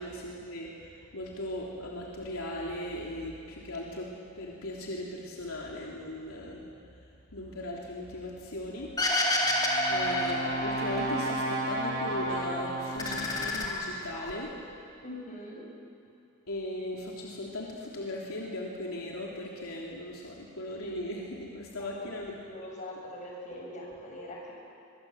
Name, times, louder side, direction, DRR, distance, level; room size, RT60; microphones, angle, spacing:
voice 1, 0.0-4.1 4.3-6.6 7.3-8.9 9.9-14.5 16.5-22.3, left 1 dB, 80° left, -3 dB, 3.2 m, -38 dB
sound 1, 9.0-11.3 11.7-12.5 12.8-14.3, left 1 dB, 20° left, 3.7 m, -29 dB
Brass instrument, 9.4-13.6, right 2 dB, 65° right, 5.5 m, -33 dB
voice 2, 15.0-15.6 21.8-24.5, left 1 dB, 35° left, -2 dB, 7.2 m, -42 dB
24.5 x 23.5 x 8.0 m, 2.5 s
head